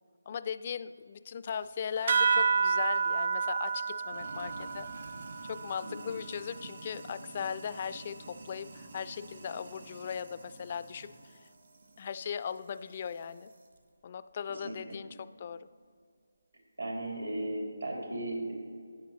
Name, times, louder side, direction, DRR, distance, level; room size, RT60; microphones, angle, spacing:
voice 1, 0.3-4.9 5.4-11.5 12.0-13.5 14.0-15.7, left 7 dB, 35° left, 15 dB, 0.3 m, -38 dB
Sink (filling or washing), 1.5-13.8, right 2 dB, 60° right, 1.2 m, -51 dB
sound 1, 2.1-7.0, right 5 dB, 45° right, 0.3 m, -30 dB
voice 2, 16.8-18.5, right 1 dB, 85° right, -1 dB, 2.8 m, -36 dB
12.0 x 9.0 x 3.2 m, 2.1 s
figure-of-eight pair, 155°, 0 cm